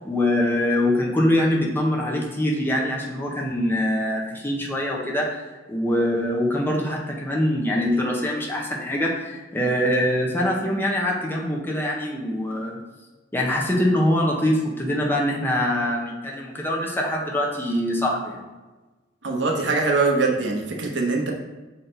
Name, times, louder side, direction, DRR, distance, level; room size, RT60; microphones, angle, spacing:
voice 1, 0.0-5.4 5.7-12.8 13.3-18.4, left 1 dB, 10° left, -2 dB, 1.0 m, -23 dB
voice 2, 19.2-21.3, right 3 dB, 75° right, 1 dB, 1.0 m, -22 dB
6.3 x 4.1 x 3.9 m, 1.2 s
head